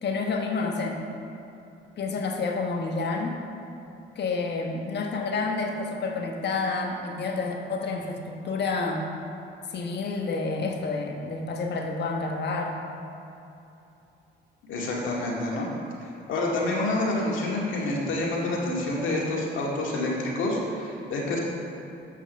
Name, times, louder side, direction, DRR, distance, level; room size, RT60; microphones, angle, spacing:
voice 1, 0.0-1.0 2.0-3.4 4.1-9.1 9.7-12.8, left 3 dB, 60° left, 2 dB, 1.2 m, -29 dB
voice 2, 14.7-15.7 16.0-21.4, left 2 dB, 75° left, -3 dB, 2.1 m, -28 dB
7.9 x 6.0 x 6.5 m, 2.9 s
cardioid pair, 90°, 20 cm